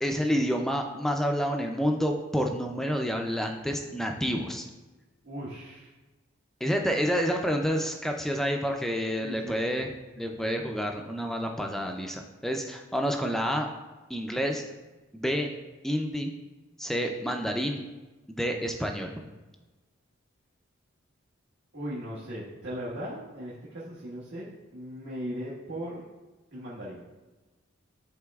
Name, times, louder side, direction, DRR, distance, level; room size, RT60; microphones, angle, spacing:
voice 1, 0.0-4.6 6.6-13.7 14.1-14.6 15.1-15.5 15.8-16.3 16.8-17.8 18.3-19.1, equal, ahead, 3 dB, 0.4 m, -29 dB
voice 2, 5.2-5.9 9.2-9.8 21.7-26.0 26.5-27.0, equal, 60° right, -9 dB, 1.5 m, -38 dB
11.5 x 4.2 x 2.4 m, 1.2 s
head